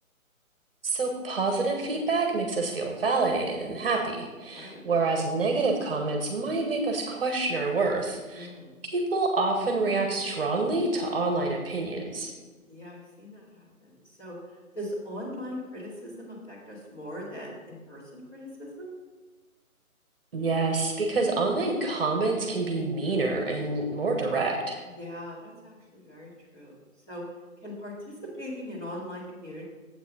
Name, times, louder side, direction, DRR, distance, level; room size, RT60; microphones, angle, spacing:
voice 1, 0.8-8.5 8.9-12.3 20.3-24.8, right 3 dB, 40° right, 3 dB, 1.2 m, -27 dB
voice 2, 4.5-4.8 8.3-8.7 12.7-13.9 14.2-14.4 14.7-18.9 21.0-21.3 25.0-26.7 27.1-27.2 27.6-29.6, left 1 dB, 20° left, -6 dB, 2.3 m, -40 dB
8.0 x 6.3 x 5.4 m, 1.3 s
figure-of-eight pair, 145°, 43 cm